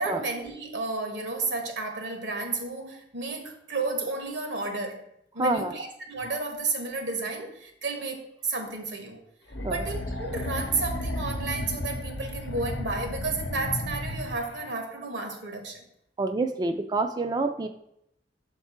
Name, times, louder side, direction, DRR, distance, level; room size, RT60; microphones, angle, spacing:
voice 1, 0.0-5.0 5.3-9.2 9.7-15.8, right 3 dB, 85° right, 1.4 m, -32 dB
voice 2, 5.4-5.7 9.6-9.8 16.2-17.7, right 2 dB, 25° right, 0.3 m, -27 dB
sound 1, 9.5-14.7, left 1 dB, 90° left, 0.8 m, -34 dB
6.5 x 4.6 x 4.3 m
head